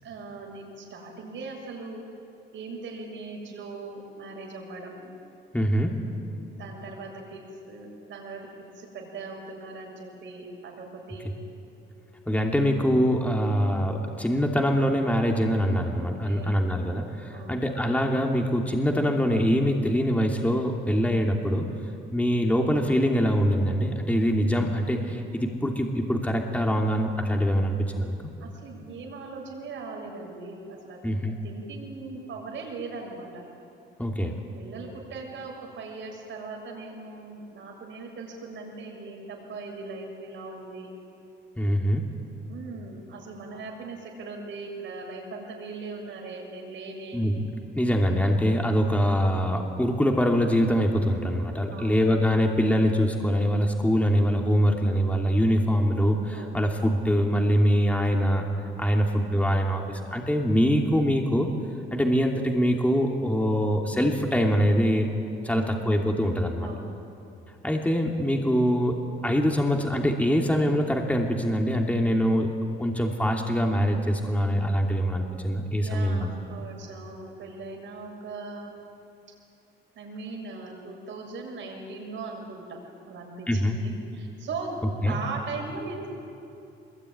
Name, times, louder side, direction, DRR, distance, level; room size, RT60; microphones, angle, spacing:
voice 1, 0.0-2.1 2.5-5.1 6.6-11.4 16.2-16.7 17.3-17.7 28.4-33.5 34.6-40.9 42.5-47.2 51.7-52.0 56.3-56.6 58.9-59.3 65.5-65.9 66.6-67.0 75.8-78.7 79.9-86.1, right 3 dB, 70° right, 0 dB, 6.9 m, -39 dB
voice 2, 5.5-5.9 12.3-21.7 22.1-28.2 31.0-31.3 34.0-34.3 41.6-42.0 47.1-47.5 47.7-58.4 58.8-61.5 61.9-65.1 65.4-66.7 67.6-68.9 69.2-76.3 83.5-83.8 85.0-85.2, equal, 5° left, 1 dB, 2.8 m, -24 dB
23.5 x 21.5 x 9.7 m, 2.7 s
cardioid pair, 90°, 20 cm